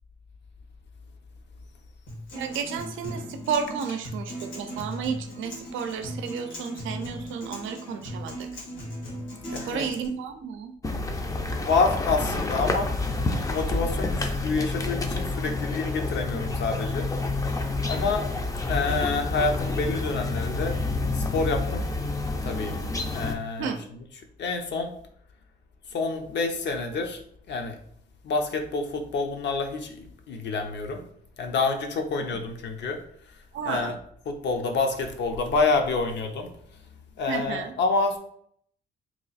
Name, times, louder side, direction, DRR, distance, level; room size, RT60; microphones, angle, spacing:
Acoustic guitar, 2.1-10.1, equal, 80° left, 1.5 m, -37 dB
voice 1, 2.3-8.5 9.7-10.7 23.6-23.8 32.2-32.3 33.5-33.9 37.3-37.7, right 7 dB, 80° right, 7 dB, 0.5 m, -32 dB
voice 2, 9.5-9.9 11.5-12.9 13.4-17.1 17.4-17.5 17.9-18.3 18.7-20.8 21.1-21.8 22.4-22.7 23.1-23.7 24.4-24.9 25.9-27.2 27.5-27.8 28.2-31.0 31.4-33.0 33.7-34.0 34.3-36.5 37.2-38.2, left 3 dB, 60° left, 5 dB, 0.7 m, -27 dB
sound 1, 10.8-23.4, left 2 dB, 15° left, 0.4 m, -28 dB
3.0 x 2.3 x 3.9 m, 0.66 s
cardioid pair, 90°, 20 cm